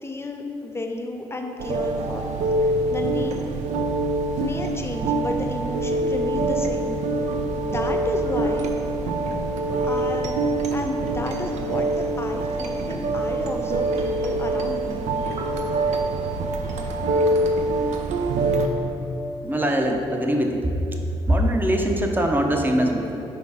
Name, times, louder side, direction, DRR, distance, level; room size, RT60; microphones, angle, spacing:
voice 1, 0.0-2.3 2.6-3.4 4.4-7.0 7.3-8.7 9.8-10.4 10.7-15.1, left 2 dB, 20° left, 3 dB, 0.7 m, -32 dB
sound 1, 1.6-18.7, right 2 dB, 65° right, 0.5 m, -25 dB
voice 2, 19.4-20.7 21.1-23.2, right 1 dB, 15° right, 2 dB, 0.8 m, -22 dB
5.0 x 4.5 x 4.9 m, 2.9 s
hypercardioid pair, 45°, 13 cm